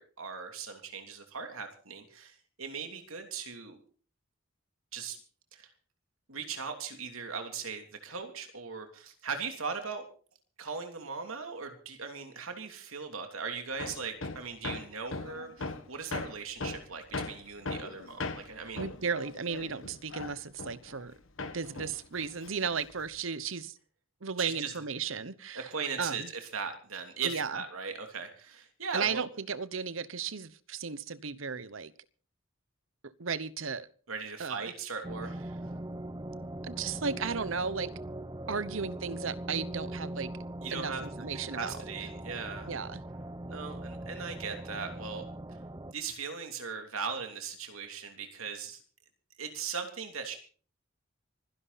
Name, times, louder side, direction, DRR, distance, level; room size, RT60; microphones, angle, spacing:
voice 1, 0.0-3.8 4.9-5.2 5.5-5.7 6.3-10.0 10.6-18.8 24.4-24.7 25.5-29.2 34.1-35.4 35.6-35.7 40.6-41.0 41.5-42.7 43.5-45.2 45.9-48.8 49.4-50.4, right 5 dB, 90° right, 3.0 m, -39 dB
Hammer, 13.8-21.1 21.4-23.2, left 3 dB, 70° left, 1.5 m, -39 dB
voice 2, 18.8-21.2 21.5-23.7 24.2-25.7 26.0-26.3 27.2-27.6 28.9-31.9 33.0-33.9 34.4-34.7 36.6-37.9 38.5-40.3 40.7-41.7 42.6-43.0, right 5 dB, 70° right, 0.9 m, -35 dB
sound 1, 35.0-45.9, right 1 dB, 20° right, 0.7 m, -41 dB
25.0 x 11.0 x 4.1 m
head